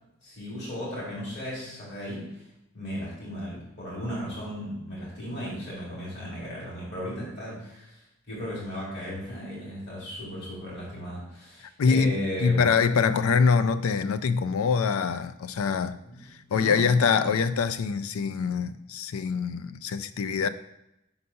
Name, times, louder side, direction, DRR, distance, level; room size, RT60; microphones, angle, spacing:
voice 1, 0.2-2.4 2.7-12.7 13.0-13.3 16.0-16.9 17.3-17.4, equal, 50° left, -7 dB, 2.4 m, -36 dB
voice 2, 11.8-16.0 16.5-20.5, left 5 dB, 75° left, 12 dB, 0.4 m, -24 dB
5.3 x 4.0 x 5.6 m, 0.85 s
head